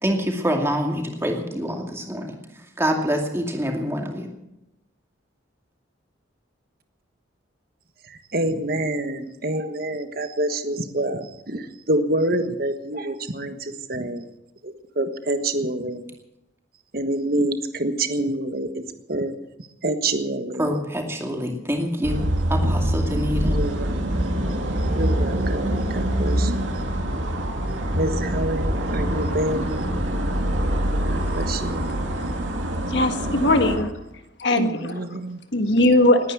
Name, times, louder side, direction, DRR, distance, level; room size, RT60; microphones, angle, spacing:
voice 1, 0.0-2.4 2.8-4.3 20.6-22.2 22.5-23.6, equal, 15° right, 2 dB, 2.4 m, -25 dB
voice 2, 8.3-11.6 11.9-14.2 15.0-16.0 16.9-18.8 19.1-19.3 19.8-20.7 23.4-23.9 25.0-26.7 28.0-29.9 31.1-32.1 34.6-35.4, right 1 dB, 50° right, 8 dB, 1.4 m, -27 dB
sound 1, 22.0-33.8, right 1 dB, 75° right, 2.6 m, -24 dB
voice 3, 31.2-31.5 32.1-32.3 32.9-33.9 34.4-35.1 35.5-36.3, left 1 dB, 60° left, 7 dB, 1.6 m, -20 dB
20.5 x 9.5 x 7.4 m, 0.88 s
head